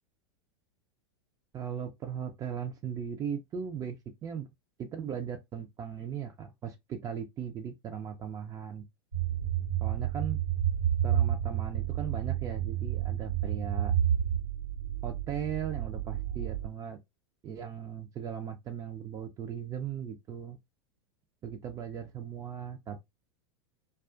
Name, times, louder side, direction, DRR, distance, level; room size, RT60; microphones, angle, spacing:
voice 1, 1.5-4.0 4.2-4.5 4.8-8.8 9.8-10.4 11.0-13.9 15.0-17.0 17.4-20.6 21.4-23.1, right 8 dB, 25° right, 0.4 m, -38 dB
sound 1, 9.1-16.7, right 10 dB, 85° right, 0.9 m, -30 dB
2.3 x 2.2 x 2.3 m
hypercardioid pair, 95°, 14 cm